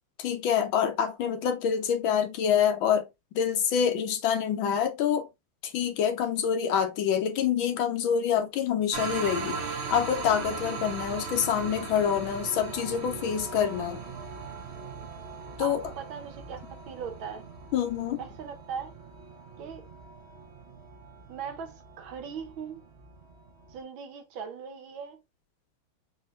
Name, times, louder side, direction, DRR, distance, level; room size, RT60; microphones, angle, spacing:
voice 1, 0.2-3.1 3.3-5.3 5.6-14.0 15.6-15.8 17.7-18.2, left 8 dB, 75° left, 1.5 m, -26 dB
sound 1, 8.9-23.8, right 4 dB, 50° right, 0.8 m, -39 dB
voice 2, 15.6-16.6 16.9-17.4 18.2-18.9 19.6-19.9 21.3-22.9 23.7-25.2, right 7 dB, 75° right, 1.6 m, -39 dB
5.5 x 2.8 x 2.5 m
omnidirectional pair, 2.3 m